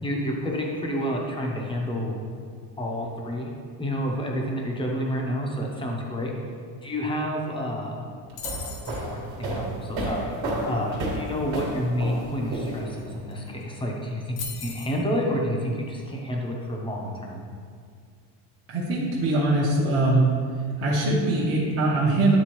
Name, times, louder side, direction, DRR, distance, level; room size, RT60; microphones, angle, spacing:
voice 1, 0.0-2.2 2.8-6.3 6.8-8.0 9.1-10.3 10.7-17.4, equal, 10° left, -1 dB, 0.8 m, -29 dB
sound 1, 8.3-13.1, right 1 dB, 45° right, 1.6 m, -31 dB
metal rods drop, 8.4-9.0 13.0-13.1 13.3-13.6 14.4-15.0, left 5 dB, 60° left, 1.0 m, -37 dB
voice 2, 18.7-20.3 20.8-22.4, right 2 dB, 30° right, -7 dB, 1.1 m, -22 dB
9.5 x 3.7 x 3.0 m, 2.1 s
cardioid pair, 135°, 46 cm